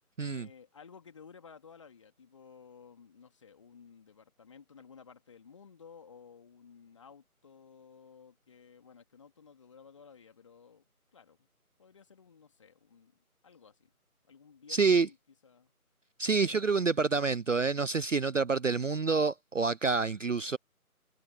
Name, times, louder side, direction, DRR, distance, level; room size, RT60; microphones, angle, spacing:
voice 1, 0.2-10.8 11.1-11.5 11.8-13.1 13.4-13.9 14.3-15.2 15.4-15.7, left 6 dB, 20° left, 3.2 m, -55 dB
voice 2, 14.7-15.1 16.2-20.6, right 4 dB, 55° right, 0.5 m, -27 dB
figure-of-eight pair, 160°, 45 cm